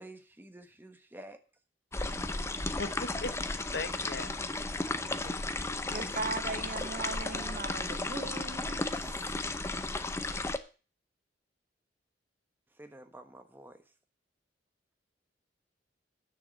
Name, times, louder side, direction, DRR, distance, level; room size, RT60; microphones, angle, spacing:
voice 1, 0.0-1.4 12.7-13.9, right 1 dB, 10° right, 1.2 m, -50 dB
sound 1, 1.9-10.6, left 2 dB, 15° left, 0.6 m, -34 dB
voice 2, 2.8-4.7 5.0-5.5, left 3 dB, 65° left, 1.0 m, -40 dB
voice 3, 5.8-9.3, right 3 dB, 45° right, 1.6 m, -39 dB
9.9 x 6.6 x 7.5 m
head